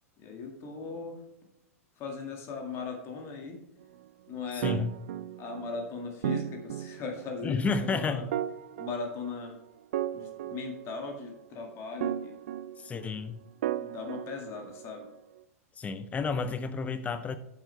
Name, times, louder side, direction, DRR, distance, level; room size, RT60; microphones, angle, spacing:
voice 1, 0.2-1.2 2.0-3.6 4.3-4.8 5.4-8.3 8.8-9.6 10.1-12.4 13.8-15.1, left 4 dB, 30° left, 2 dB, 2.1 m, -38 dB
voice 2, 4.5-4.9 7.4-8.3 12.8-13.4 15.8-17.4, left 4 dB, 15° left, 12 dB, 0.7 m, -31 dB
sound 1, 4.6-5.8 6.2-7.4 8.3-9.5 9.9-11.3 12.0-13.2 13.6-15.0, right 11 dB, 55° right, 0.4 m, -35 dB
10.5 x 7.9 x 3.4 m, 0.83 s
figure-of-eight pair, 95°, 8 cm